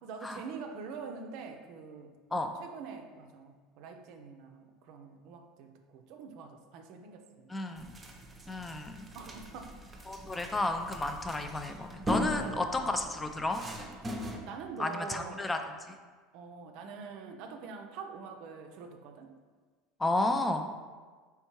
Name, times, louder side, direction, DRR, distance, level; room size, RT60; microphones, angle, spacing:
voice 1, 0.0-7.6 8.3-8.6 9.1-9.8 12.1-13.0 14.0-15.5 16.3-19.4, right 5 dB, 65° right, 4 dB, 0.5 m, -45 dB
voice 2, 7.5-7.9 8.5-9.1 10.1-13.6 14.8-15.6 20.0-20.7, left 2 dB, 15° left, 6 dB, 0.4 m, -32 dB
sound 1, 7.8-14.4, equal, 20° right, 0.6 m, -39 dB
4.3 x 3.4 x 3.0 m, 1.4 s
hypercardioid pair, 85°, 0 cm